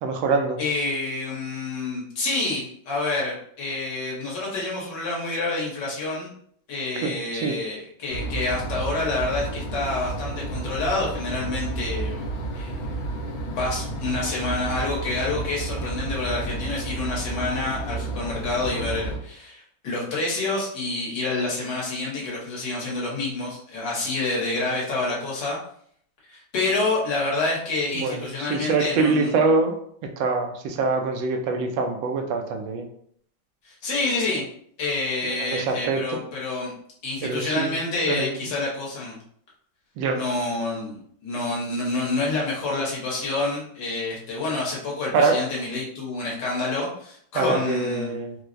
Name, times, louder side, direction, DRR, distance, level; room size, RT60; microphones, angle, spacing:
voice 1, 0.0-0.6 7.0-7.6 28.0-29.7 30.2-32.8 35.4-36.0 37.2-37.7 38.1-38.3 40.0-40.2 45.1-45.4 47.3-48.4, right 4 dB, 80° right, 4 dB, 1.3 m, -24 dB
voice 2, 0.6-6.3 6.7-12.2 12.5-12.7 13.5-25.6 26.3-29.4 33.6-34.4 34.8-36.7 37.0-39.2 40.1-41.0 41.2-48.2, left 3 dB, 65° left, -4 dB, 1.6 m, -28 dB
sound 1, 8.1-19.2, right 2 dB, 85° left, 1.5 m, -31 dB
4.5 x 2.0 x 2.5 m, 0.64 s
omnidirectional pair, 2.1 m